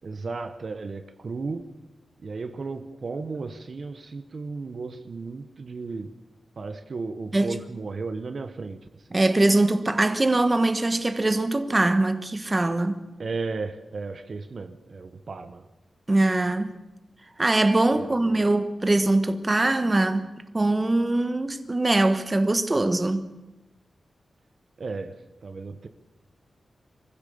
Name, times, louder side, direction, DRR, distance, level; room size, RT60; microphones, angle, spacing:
voice 1, 0.0-1.7 2.2-6.1 6.6-8.8 9.1-9.2 13.2-15.6 17.9-18.5 24.8-25.2 25.4-25.9, right 4 dB, 50° right, 1.2 m, -34 dB
voice 2, 9.1-13.0 16.1-16.7 17.4-20.3 20.5-23.3, right 2 dB, 20° right, 1.3 m, -22 dB
24.0 x 15.5 x 7.0 m
wide cardioid pair, 130°, 0 cm